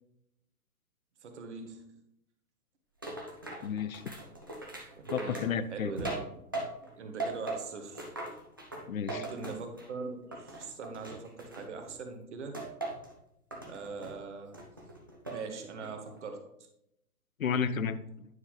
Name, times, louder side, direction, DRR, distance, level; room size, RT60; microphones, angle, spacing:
voice 1, 1.2-2.0 4.9-6.2 6.8-8.0 9.1-12.6 13.6-14.7 15.3-16.5, right 4 dB, 50° right, 5 dB, 1.2 m, -42 dB
sound 1, 3.0-6.9 7.2-10.0 10.3-11.9 12.5-13.1 13.5-14.1 14.5-15.4 15.8-16.2, right 2 dB, 15° right, 0.4 m, -40 dB
voice 2, 3.6-4.0 5.1-5.9 8.9-9.3 17.4-18.3, left 7 dB, 65° left, 13 dB, 0.7 m, -32 dB
9.3 x 5.6 x 3.2 m, 0.80 s
figure-of-eight pair, 125°, 45 cm